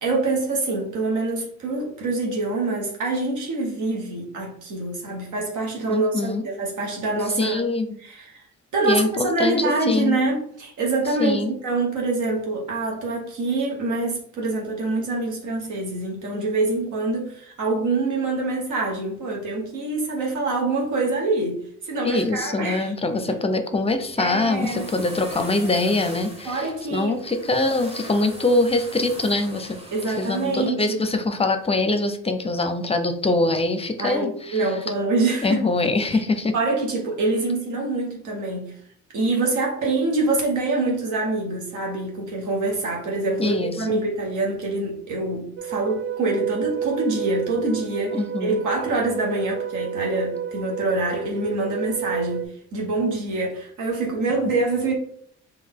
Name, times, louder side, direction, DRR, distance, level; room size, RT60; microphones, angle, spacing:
voice 1, 0.0-7.6 8.0-8.4 8.7-21.6 21.8-22.9 24.2-24.9 26.4-27.1 29.9-31.0 34.0-35.6 36.5-38.7 39.1-54.9, right 3 dB, 75° right, -1 dB, 1.0 m, -25 dB
voice 2, 5.9-6.5 7.4-8.0 8.8-10.2 11.2-11.5 22.0-29.8 30.1-34.7 35.4-36.5 43.4-44.0 48.1-48.6, left 2 dB, 20° left, 8 dB, 0.5 m, -23 dB
sound 1, 23.9-30.7, right 1 dB, 20° right, 1.1 m, -41 dB
sound 2, 45.6-52.5, right 8 dB, 45° right, 0.4 m, -31 dB
3.8 x 2.9 x 3.6 m, 0.64 s
cardioid pair, 90°, 30 cm